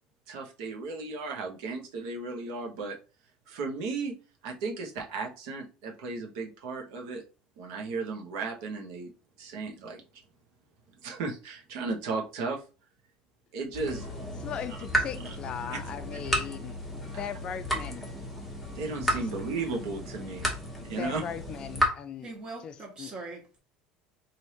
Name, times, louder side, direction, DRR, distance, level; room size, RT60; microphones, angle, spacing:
voice 1, 0.3-3.0 3.5-4.1 4.4-7.2 7.6-9.1 9.4-10.0 11.0-12.6 13.5-14.1 15.2-15.4 15.7-15.8 17.1-17.2 18.7-20.5 20.8-21.2, right 4 dB, 85° right, 1.1 m, -35 dB
sound 1, 13.7-21.9, equal, ahead, 1.1 m, -33 dB
voice 2, 14.4-16.8 17.2-18.1 20.8-22.3 22.6-23.1, left 8 dB, 35° left, 0.3 m, -38 dB
voice 3, 22.2-23.6, right 3 dB, 30° right, 1.3 m, -42 dB
3.2 x 2.7 x 4.2 m
cardioid pair, 150°, 3 cm